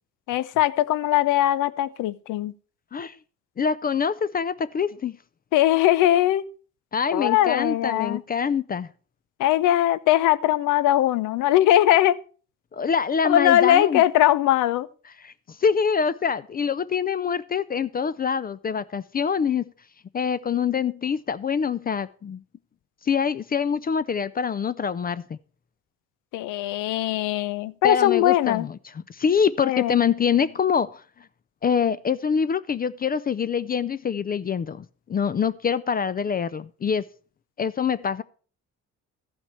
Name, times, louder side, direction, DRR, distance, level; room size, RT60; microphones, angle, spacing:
voice 1, 0.3-2.5 5.5-6.4 7.1-8.2 9.4-12.2 13.2-14.9 26.3-28.7 29.6-30.0, left 13 dB, 90° left, 0.5 m, -20 dB
voice 2, 3.6-5.2 6.9-8.9 12.7-14.0 15.2-19.6 20.1-22.4 23.0-25.4 27.8-28.8 29.1-31.0 31.6-37.0 37.6-38.2, left 6 dB, 30° left, 0.4 m, -25 dB
13.5 x 5.9 x 4.3 m
cardioid pair, 90°, 30 cm